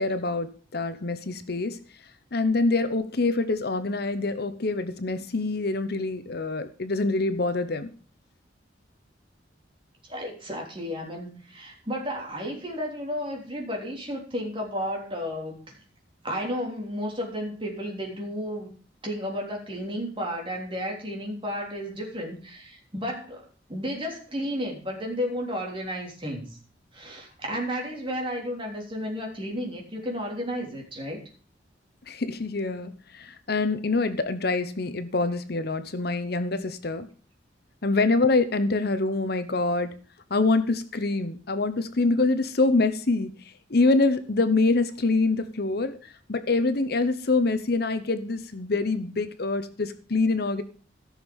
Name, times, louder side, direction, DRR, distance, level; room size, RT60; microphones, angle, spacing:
voice 1, 0.0-1.8 2.3-7.9 32.1-37.1 37.8-39.9 40.3-43.3 43.7-50.6, left 3 dB, 55° left, 11 dB, 0.9 m, -25 dB
voice 2, 10.1-15.8 16.2-18.7 19.0-26.6 26.9-31.2, equal, 30° right, 0 dB, 3.4 m, -33 dB
14.5 x 6.5 x 5.4 m, 0.40 s
head